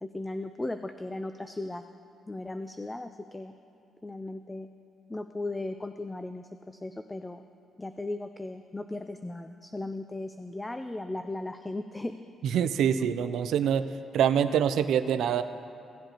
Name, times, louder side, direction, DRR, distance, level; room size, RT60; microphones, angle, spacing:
voice 1, 0.0-1.8 2.3-3.5 4.0-4.7 5.1-7.4 7.8-12.1, left 2 dB, 15° left, 8 dB, 0.3 m, -36 dB
voice 2, 12.4-13.9 14.1-15.4, right 8 dB, 75° right, 11 dB, 0.4 m, -25 dB
16.5 x 7.9 x 2.9 m, 2.4 s
cardioid pair, 90°, 0 cm